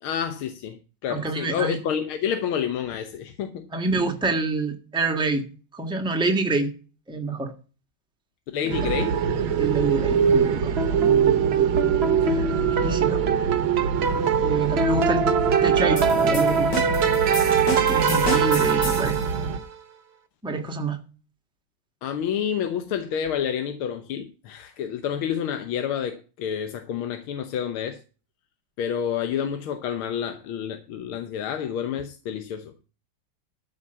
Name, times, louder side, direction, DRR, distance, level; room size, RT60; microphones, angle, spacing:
voice 1, 0.0-3.7 8.5-9.1 22.0-28.0 28.8-32.8, left 8 dB, 75° left, 1.8 m, -29 dB
voice 2, 1.1-1.8 3.7-5.5 5.7-6.7 7.1-7.5 8.6-8.9 9.6-11.8 12.2-12.5 12.8-13.2 14.4-15.3 15.6-16.7 17.9-19.2 20.4-21.0, right 3 dB, 5° right, 1.3 m, -27 dB
sound 1, 8.7-19.6, right 7 dB, 70° right, 1.7 m, -25 dB
sound 2, 10.8-19.7, right 6 dB, 50° right, 0.7 m, -23 dB
sound 3, 16.0-19.2, left 2 dB, 50° left, 2.9 m, -32 dB
13.0 x 5.4 x 6.8 m
omnidirectional pair, 2.4 m